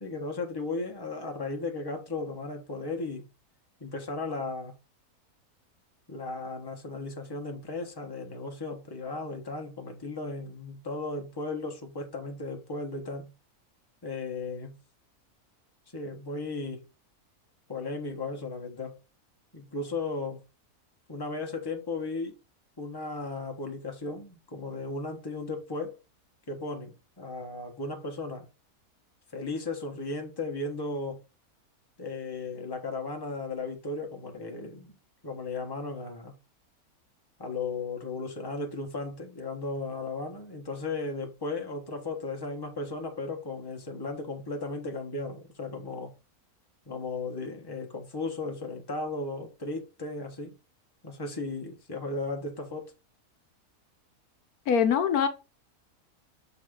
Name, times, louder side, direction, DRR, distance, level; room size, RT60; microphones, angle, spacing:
voice 1, 0.0-3.3 3.8-4.7 6.1-13.3 14.0-14.8 15.9-16.9 17.7-19.0 19.5-20.4 21.1-22.4 22.8-26.0 26.5-28.5 29.3-31.2 32.0-34.9 35.2-36.4 37.4-46.1 46.9-50.5 51.0-52.9, left 3 dB, 15° left, 1.2 m, -35 dB
voice 2, 54.7-55.3, left 7 dB, 75° left, 1.2 m, -23 dB
6.5 x 4.0 x 3.7 m
omnidirectional pair, 1.6 m